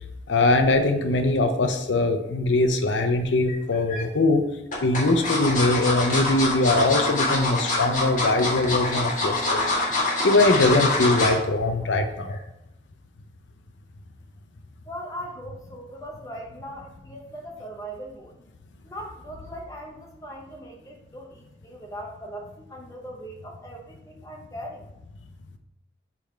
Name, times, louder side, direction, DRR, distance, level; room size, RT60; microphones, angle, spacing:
voice 1, 0.3-4.5 4.8-9.6 10.2-12.4, left 2 dB, 90° left, 6 dB, 0.6 m, -21 dB
sound 1, 3.5-4.0 4.7-11.4 11.8-12.0 12.3-12.4, left 2 dB, 40° left, 1.7 m, -25 dB
Wind instrument woodwind instrument, 5.1-11.2, right 1 dB, 10° right, 1.6 m, -42 dB
voice 2, 14.9-18.3 18.8-24.9, equal, 20° left, 0 dB, 0.9 m, -39 dB
6.9 x 3.5 x 4.4 m, 0.89 s
head